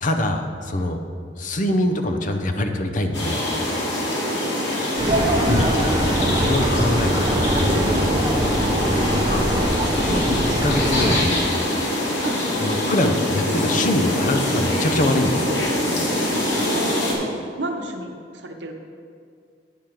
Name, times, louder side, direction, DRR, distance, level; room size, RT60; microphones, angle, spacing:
voice 1, 0.0-1.0 1.4-3.4 5.5-5.7 6.3-7.8 9.3-11.4 12.6-15.6, left 1 dB, 45° left, 6 dB, 0.7 m, -24 dB
sound 1, 3.1-17.1, left 1 dB, 85° left, 2.0 m, -24 dB
voice 2, 4.2-5.4 12.2-12.4 16.6-18.7, right 1 dB, 75° right, 3 dB, 0.9 m, -32 dB
sound 2, 5.0-11.3, right 1 dB, 25° right, 0.8 m, -22 dB
9.2 x 5.1 x 6.0 m, 2.3 s
head